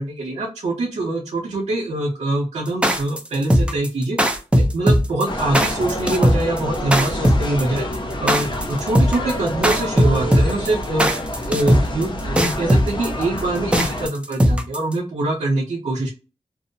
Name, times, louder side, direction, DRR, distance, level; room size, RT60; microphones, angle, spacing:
voice 1, 0.0-4.2 4.5-7.9 8.2-11.1 11.5-16.1, right 2 dB, 70° right, -5 dB, 0.7 m, -24 dB
sound 1, 2.7-14.9, equal, 10° right, 0.4 m, -18 dB
sound 2, 5.3-14.1, left 1 dB, 45° left, 0.6 m, -28 dB
2.6 x 2.1 x 2.5 m, 0.32 s
wide cardioid pair, 85°, 11 cm